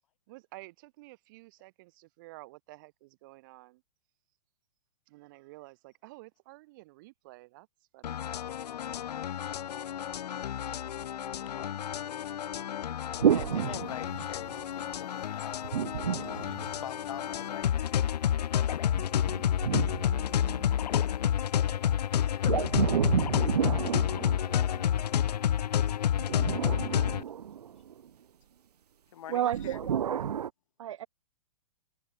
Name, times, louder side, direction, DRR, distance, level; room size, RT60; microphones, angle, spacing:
voice 1, 0.3-3.8 5.1-7.7 7.9-8.2, right 22 dB, 30° right, 3.7 m, -51 dB
sound 1, 8.0-27.2, left 10 dB, 85° left, 0.6 m, -30 dB
voice 2, 13.1-15.6 16.1-17.7 29.1-29.8, left 11 dB, 55° left, 4.5 m, -45 dB
sound 2, 13.2-14.6 15.6-17.2 18.9-20.9 22.4-25.0 26.1-28.0 29.5-30.5, right 9 dB, 75° right, 1.5 m, -31 dB
voice 3, 29.3-30.2 30.8-31.1, right 11 dB, 50° right, 0.6 m, -32 dB
hypercardioid pair, 170°, 20 cm